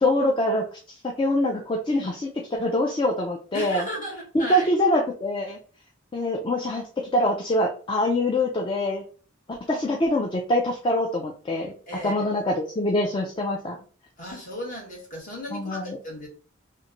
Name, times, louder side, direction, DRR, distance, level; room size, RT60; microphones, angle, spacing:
voice 1, 0.0-3.8 4.3-5.6 6.1-9.0 9.5-11.7 12.0-13.8 15.5-16.0, left 1 dB, 25° left, 0 dB, 0.4 m, -24 dB
voice 2, 3.5-4.7 11.9-12.3 14.2-16.3, equal, 40° left, -1 dB, 1.2 m, -35 dB
3.0 x 2.2 x 3.7 m, 0.40 s
head